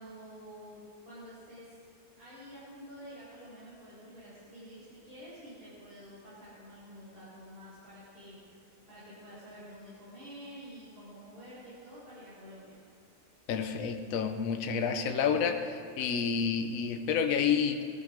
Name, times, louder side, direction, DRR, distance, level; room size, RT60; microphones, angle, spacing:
voice 1, 0.0-1.8 2.1-12.8, equal, 85° right, -11 dB, 5.6 m, -49 dB
voice 2, 13.5-17.8, left 6 dB, 65° left, 7 dB, 1.2 m, -29 dB
17.5 x 12.5 x 5.1 m, 2.4 s
omnidirectional pair, 1.6 m